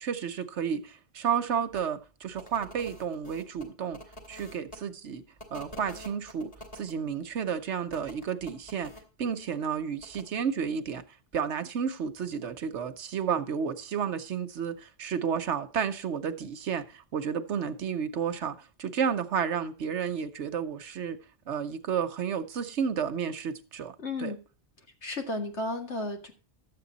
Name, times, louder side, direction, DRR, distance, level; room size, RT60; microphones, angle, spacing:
voice 1, 0.0-4.0 4.3-5.2 5.5-8.9 9.2-11.0 11.3-21.2 21.5-24.3, right 7 dB, 90° right, 1.3 m, -31 dB
sound 1, 1.7-1.8 2.3-4.8 5.4-6.9 7.9-9.0 10.0-10.2, left 1 dB, 30° left, 2.7 m, -46 dB
voice 2, 24.0-24.4 25.0-26.3, left 2 dB, 75° left, 2.3 m, -33 dB
12.5 x 7.9 x 4.0 m
omnidirectional pair, 1.1 m